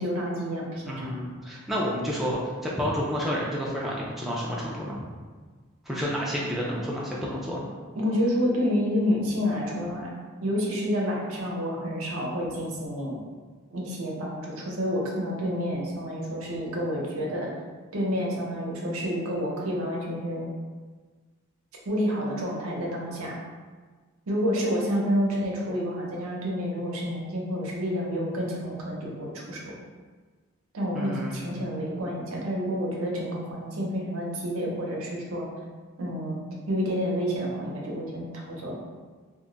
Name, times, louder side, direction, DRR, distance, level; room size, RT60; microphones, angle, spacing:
voice 1, 0.0-1.1 8.0-10.1 10.4-13.2 13.7-17.5 17.9-20.5 21.9-23.4 24.3-29.7 30.7-35.5 36.0-36.4 36.7-38.8, equal, 85° right, -3 dB, 0.7 m, -29 dB
voice 2, 0.9-5.1 5.9-7.7 30.9-31.7, equal, ahead, -6 dB, 0.3 m, -30 dB
2.2 x 2.0 x 3.8 m, 1.4 s
head